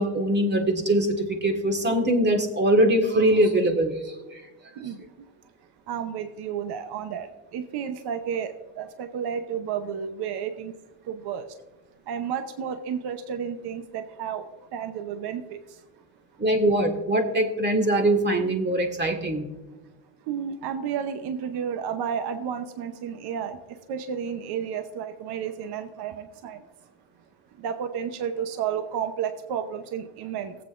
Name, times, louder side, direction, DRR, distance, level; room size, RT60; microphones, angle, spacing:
voice 1, 0.0-4.0 4.3-4.4 16.4-19.5, right 1 dB, 25° right, 3 dB, 1.7 m, -22 dB
voice 2, 5.9-7.3 7.5-10.7 11.1-11.5 12.1-14.4 14.7-15.4 20.3-23.6 23.9-26.6 27.6-30.6, right 8 dB, 65° right, 8 dB, 0.9 m, -31 dB
18.0 x 8.1 x 2.5 m, 1.1 s
cardioid pair, 105°, 42 cm